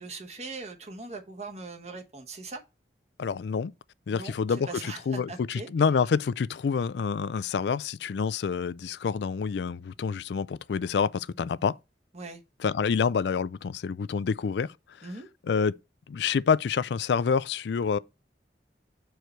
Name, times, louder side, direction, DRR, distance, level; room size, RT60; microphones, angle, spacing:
voice 1, 0.0-2.6 4.1-5.7 12.1-12.4 15.0-15.3, right 3 dB, 40° right, 1.2 m, -40 dB
voice 2, 3.2-3.7 4.1-11.8 12.6-14.7 15.5-15.7 16.1-18.0, left 6 dB, 75° left, 0.4 m, -27 dB
6.6 x 4.7 x 4.4 m
head